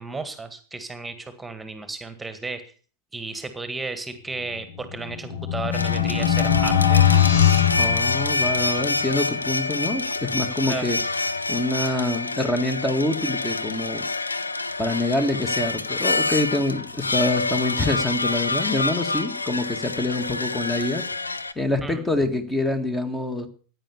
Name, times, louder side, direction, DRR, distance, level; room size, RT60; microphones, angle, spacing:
voice 1, 0.0-2.6 3.1-7.1 10.6-10.8 21.8-22.0, right 3 dB, 10° right, 10 dB, 1.9 m, -34 dB
sound 1, 4.8-8.7, left 10 dB, 60° left, 1.9 m, -20 dB
sound 2, 5.7-21.5, left 3 dB, 80° left, 0.9 m, -27 dB
voice 2, 7.8-11.0 11.5-14.0 14.8-21.1 21.6-23.5, left 2 dB, 10° left, 8 dB, 1.9 m, -26 dB
15.5 x 9.9 x 7.1 m, 0.41 s
figure-of-eight pair, 90°, 0 cm